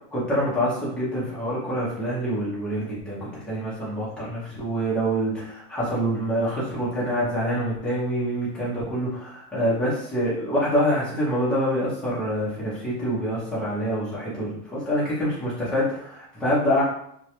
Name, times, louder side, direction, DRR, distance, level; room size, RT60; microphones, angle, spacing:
voice 1, 0.1-16.8, equal, ahead, -9 dB, 0.4 m, -26 dB
2.2 x 2.1 x 2.8 m, 0.69 s
hypercardioid pair, 135°, 47 cm